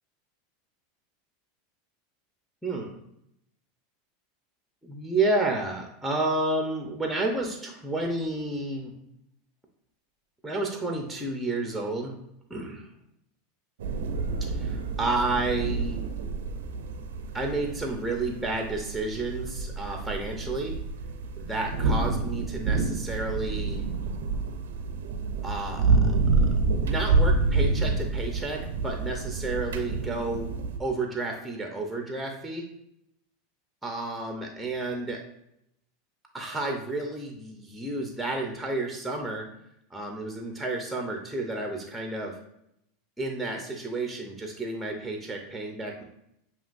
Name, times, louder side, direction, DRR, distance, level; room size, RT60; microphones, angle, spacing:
voice 1, 2.6-3.0 4.8-8.9 10.4-12.2 12.5-12.9 14.5-16.0 17.3-20.7 21.4-23.8 25.4-26.1 26.8-30.5 30.8-32.6 33.8-35.2 36.3-39.5 39.9-42.4 43.2-46.0, right 2 dB, ahead, 2 dB, 0.8 m, -31 dB
sound 1, 13.8-30.8, right 3 dB, 80° right, 0.5 m, -28 dB
7.0 x 3.0 x 2.6 m, 0.78 s
hypercardioid pair, 100°, 0 cm